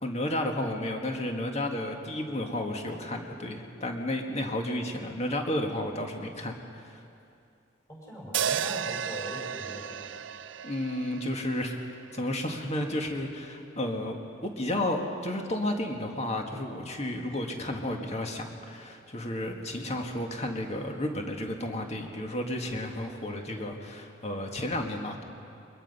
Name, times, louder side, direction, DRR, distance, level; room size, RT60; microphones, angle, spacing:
voice 1, 0.0-7.0 10.6-11.8 12.1-25.2, left 1 dB, 35° left, 3 dB, 1.8 m, -32 dB
voice 2, 7.9-10.1, equal, 15° left, -3 dB, 5.3 m, -41 dB
sound 1, 8.3-12.6, right 8 dB, 75° right, 0.5 m, -34 dB
23.0 x 21.0 x 5.6 m, 2.6 s
head